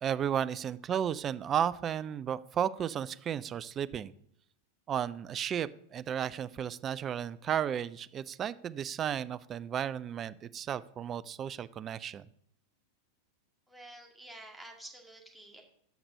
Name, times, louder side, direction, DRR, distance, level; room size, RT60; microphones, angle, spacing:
voice 1, 0.0-4.1 4.9-12.2, right 9 dB, 25° right, 15 dB, 0.4 m, -33 dB
voice 2, 13.7-15.6, right 1 dB, ahead, -1 dB, 2.0 m, -49 dB
8.0 x 5.9 x 6.3 m, 0.69 s
figure-of-eight pair, 90°, 0 cm